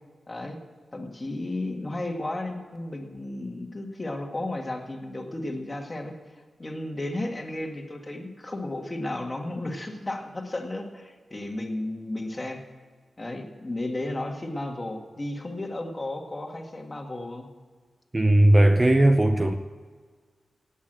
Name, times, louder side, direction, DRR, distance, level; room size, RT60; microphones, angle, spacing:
voice 1, 0.3-0.6 0.9-6.2 6.6-12.6 13.2-17.5, left 1 dB, 20° left, 1.9 m, -33 dB
voice 2, 18.1-19.5, right 1 dB, 15° right, 0.6 m, -18 dB
17.0 x 8.5 x 7.6 m
wide cardioid pair, 120°, 0 cm